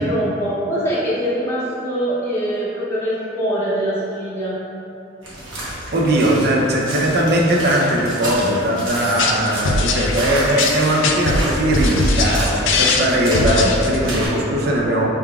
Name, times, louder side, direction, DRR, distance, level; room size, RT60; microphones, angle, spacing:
voice 1, 0.0-4.6, equal, 15° left, -9 dB, 0.7 m, -23 dB
sound 1, 5.2-14.3, right 1 dB, 90° right, 1.0 m, -30 dB
voice 2, 5.9-15.1, right 1 dB, 55° right, -2 dB, 0.6 m, -19 dB
sound 2, 9.0-14.2, left 3 dB, 75° left, 0.4 m, -20 dB
4.6 x 3.5 x 2.3 m, 2.8 s
head